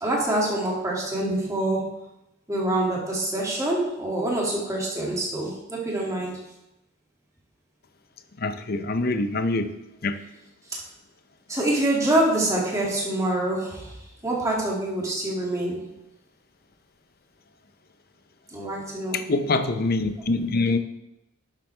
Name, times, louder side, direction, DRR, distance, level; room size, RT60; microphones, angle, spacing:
voice 1, 0.0-1.9 2.5-6.4 10.7-10.8 11.5-15.9 18.5-19.3, right 1 dB, 15° right, -3 dB, 2.3 m, -26 dB
voice 2, 8.4-9.8 10.0-10.2 19.1-20.8, left 3 dB, 45° left, 10 dB, 0.7 m, -25 dB
11.0 x 7.5 x 3.3 m, 0.88 s
head